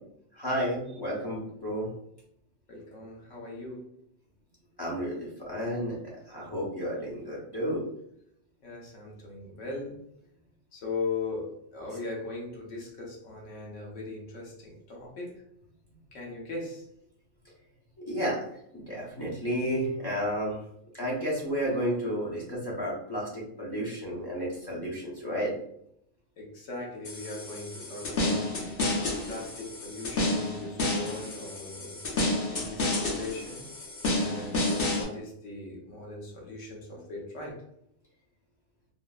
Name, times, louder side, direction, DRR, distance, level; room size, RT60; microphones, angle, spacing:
voice 1, 0.3-1.9 4.8-6.0 6.3-7.8 18.0-18.4 18.7-20.6 20.9-25.5, equal, 30° left, -5 dB, 0.5 m, -31 dB
voice 2, 2.7-3.9 8.6-10.0 10.7-15.3 16.1-16.9 26.4-28.8 29.3-32.0 32.5-33.6 34.1-37.6, left 3 dB, 70° left, -2 dB, 1.2 m, -39 dB
sound 1, 27.0-35.0, left 2 dB, 55° left, 0.8 m, -30 dB
3.6 x 2.0 x 2.3 m, 0.74 s
omnidirectional pair, 1.3 m